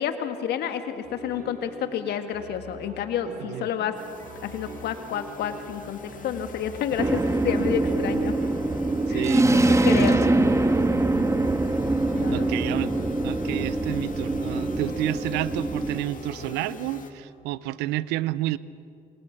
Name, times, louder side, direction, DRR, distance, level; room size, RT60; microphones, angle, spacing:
voice 1, 0.0-3.9 4.4-8.3 9.1-9.3 9.8-10.3 12.1-12.8, left 9 dB, 70° left, 8 dB, 1.9 m, -30 dB
sound 1, 1.0-17.2, right 3 dB, 55° right, 4.9 m, -44 dB
sound 2, 3.9-17.1, left 4 dB, 50° left, 2.4 m, -43 dB
sound 3, 7.0-16.0, right 2 dB, 15° right, 1.9 m, -23 dB
voice 2, 9.1-10.1 12.3-12.9 13.2-18.6, right 16 dB, 80° right, 19 dB, 0.6 m, -30 dB
28.0 x 21.5 x 6.0 m, 2.5 s
hypercardioid pair, 45°, 17 cm